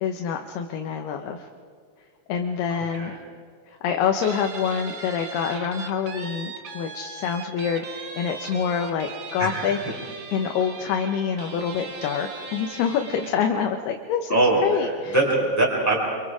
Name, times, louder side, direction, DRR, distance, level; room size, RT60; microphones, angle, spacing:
voice 1, 0.0-1.4 2.3-3.2 3.7-9.8 10.3-15.2, left 7 dB, 80° left, 3 dB, 2.9 m, -26 dB
voice 2, 2.7-3.2 9.4-9.7 14.3-16.0, right 2 dB, 5° left, -3 dB, 4.1 m, -23 dB
Guitar, 4.2-13.5, right 4 dB, 55° right, 1.4 m, -39 dB
28.5 x 25.5 x 4.9 m, 2.1 s
omnidirectional pair, 4.6 m